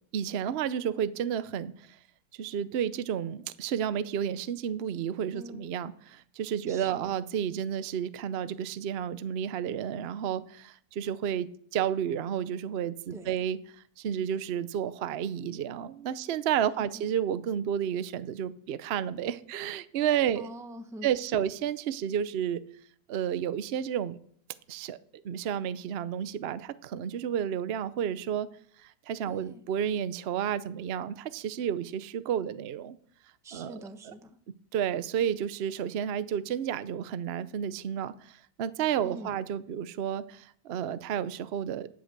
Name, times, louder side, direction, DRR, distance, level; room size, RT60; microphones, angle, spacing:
voice 1, 0.1-1.7 2.4-13.6 14.0-20.5 21.0-22.6 23.1-24.2 24.7-25.0 25.2-28.5 28.8-33.0 33.5-33.7 34.7-41.9, right 9 dB, 70° right, 14 dB, 0.5 m, -31 dB
voice 2, 5.3-5.7 6.7-7.1 13.1-13.5 16.8-17.1 20.3-21.5 29.2-29.6 33.4-34.4 39.0-39.4, right 1 dB, 5° right, 7 dB, 0.7 m, -45 dB
17.5 x 7.9 x 6.6 m, 0.62 s
omnidirectional pair, 2.0 m